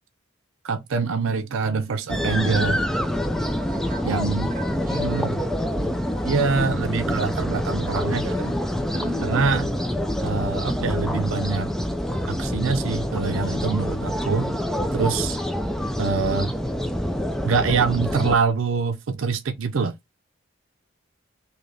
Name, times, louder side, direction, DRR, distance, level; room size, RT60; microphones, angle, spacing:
voice 1, 0.6-2.8 4.0-4.5 4.9-5.4 6.2-8.5 9.2-9.7 10.2-11.7 12.3-14.5 14.9-15.4 16.0-16.5 17.4-19.9, right 5 dB, 85° right, 0.5 m, -25 dB
sound 1, 2.1-18.4, equal, ahead, 0.3 m, -26 dB
voice 2, 3.6-5.3 5.9-6.4 8.9-9.5 14.8-15.0, right 2 dB, 40° right, 0.8 m, -41 dB
3.3 x 2.8 x 3.8 m
head